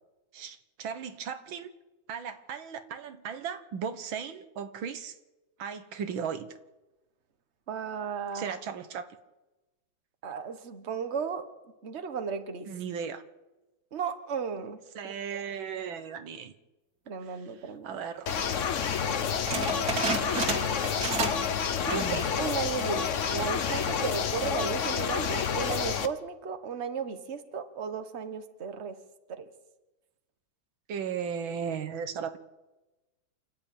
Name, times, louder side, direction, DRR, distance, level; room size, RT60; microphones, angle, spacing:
voice 1, 0.3-1.7 2.1-5.2 5.6-6.5 8.3-9.1 12.7-13.2 15.0-16.5 17.2-18.3 21.9-22.3 30.9-32.4, right 7 dB, 90° right, 9 dB, 2.0 m, -36 dB
voice 2, 7.7-8.5 10.2-11.4 11.8-12.7 13.9-15.1 17.1-18.0 21.8-29.0 29.3-29.5, right 6 dB, 40° right, 8 dB, 1.5 m, -35 dB
sound 1, 18.3-26.1, left 7 dB, 50° left, 1.0 m, -29 dB
sound 2, 19.5-21.5 21.8-22.2 22.6-22.7 23.4-23.8, right 3 dB, 55° right, 2.6 m, -31 dB
28.0 x 11.5 x 8.8 m, 1.1 s
omnidirectional pair, 2.1 m